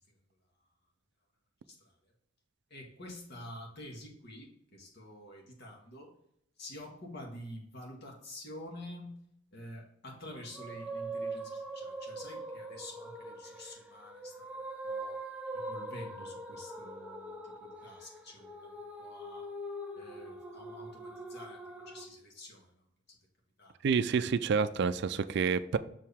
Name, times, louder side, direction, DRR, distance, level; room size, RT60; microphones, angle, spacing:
voice 1, 2.7-6.1 6.6-9.2 9.5-14.5 14.8-15.2 15.5-19.5 19.9-22.7 23.1-23.2 23.6-23.7, left 1 dB, 60° left, 1.8 m, -48 dB
sound 1, 10.3-22.1, right 2 dB, 5° right, 0.7 m, -42 dB
voice 2, 23.8-25.8, right 5 dB, 60° right, 0.4 m, -28 dB
6.2 x 4.7 x 3.5 m
head